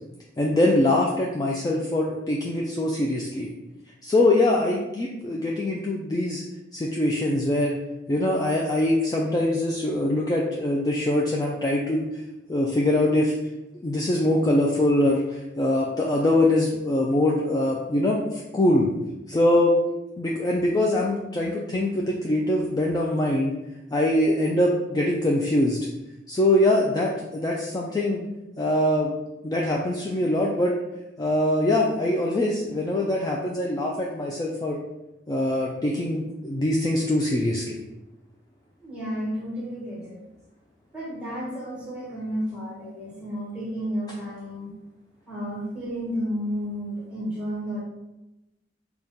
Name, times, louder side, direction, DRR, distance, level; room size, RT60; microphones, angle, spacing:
voice 1, 0.4-3.5 4.0-6.4 6.7-7.8 8.1-12.0 12.5-13.3 13.8-18.9 19.3-19.8 20.2-23.6 23.9-25.8 26.3-28.2 28.6-29.1 29.4-30.7 31.2-34.8 35.3-37.8, left 1 dB, 20° left, -2 dB, 0.3 m, -23 dB
voice 2, 38.8-40.2 40.9-44.7 45.3-47.8, equal, 5° right, -6 dB, 1.3 m, -32 dB
4.0 x 2.3 x 3.5 m, 0.96 s
head